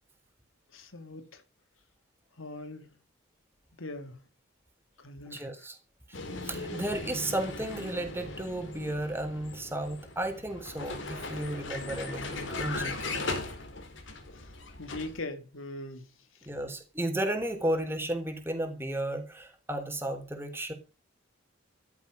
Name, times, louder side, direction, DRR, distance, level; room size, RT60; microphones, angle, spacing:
voice 1, 0.7-1.4 2.4-2.9 3.8-4.2 5.0-5.4 14.3-16.0, left 2 dB, 85° left, 2.7 m, -41 dB
voice 2, 5.3-5.8 6.4-13.2 16.5-20.7, right 1 dB, 10° right, 3.9 m, -33 dB
Vehicle, 6.1-15.2, left 2 dB, 65° left, 4.2 m, -38 dB
14.5 x 13.5 x 5.4 m
head